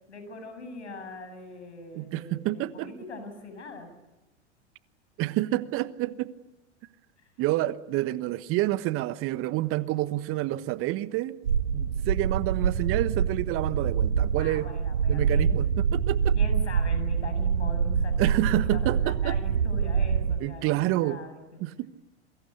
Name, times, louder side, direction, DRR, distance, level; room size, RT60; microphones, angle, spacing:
voice 1, 0.1-3.9 7.2-7.3 14.4-15.8 16.3-21.7, left 2 dB, 75° left, 8 dB, 7.6 m, -42 dB
voice 2, 1.9-2.9 5.2-6.3 7.4-11.4 11.7-14.7 15.1-16.3 18.2-19.4 20.4-21.2 21.6-21.9, right 16 dB, 40° right, 16 dB, 1.2 m, -28 dB
sound 1, 11.4-20.4, right 7 dB, 80° right, 1.2 m, -25 dB
27.5 x 23.5 x 8.2 m, 1.1 s
figure-of-eight pair, 90°, 34 cm